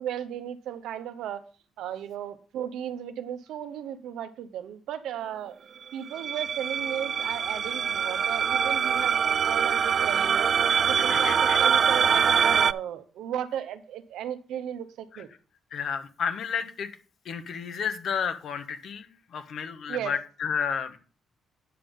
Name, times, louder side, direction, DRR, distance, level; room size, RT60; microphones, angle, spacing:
voice 1, 0.0-1.4 1.8-5.6 5.9-10.5 10.8-11.3 11.6-15.3 19.9-20.1, right 10 dB, 85° right, 10 dB, 1.0 m, -35 dB
sound 1, 6.1-12.7, right 7 dB, 50° right, 0.3 m, -24 dB
voice 2, 10.7-11.6 15.1-15.2 15.7-16.9 17.2-21.0, left 7 dB, 65° left, 9 dB, 1.3 m, -32 dB
9.7 x 5.5 x 5.4 m, 0.38 s
cardioid pair, 90°, 0 cm